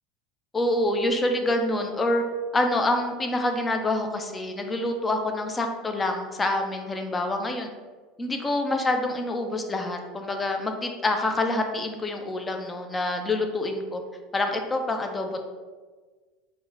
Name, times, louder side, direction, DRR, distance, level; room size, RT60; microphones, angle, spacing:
voice 1, 0.5-2.2 2.5-7.7 8.2-14.0 14.3-15.5, left 2 dB, 20° left, 5 dB, 0.4 m, -26 dB
4.5 x 2.1 x 2.6 m, 1.4 s
supercardioid pair, 100°, 0 cm